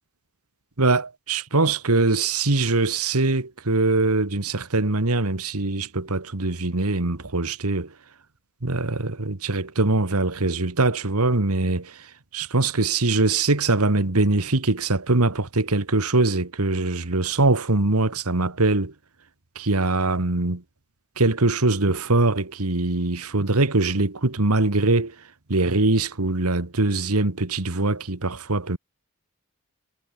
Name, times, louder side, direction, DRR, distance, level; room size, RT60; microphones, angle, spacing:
voice 1, 0.8-7.9 8.6-18.9 19.6-20.6 21.2-25.2 25.5-28.8, right 2 dB, 85° right, 1.8 m, -22 dB
head